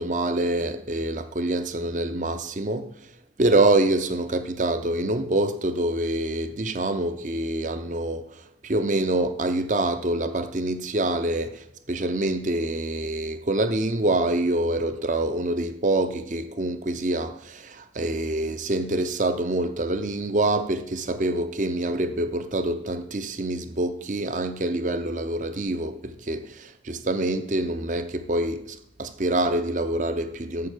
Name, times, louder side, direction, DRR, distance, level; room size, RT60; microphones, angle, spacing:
voice 1, 0.0-2.9 3.4-30.7, right 2 dB, 45° right, 0.7 m, -26 dB
7.2 x 6.8 x 6.7 m
head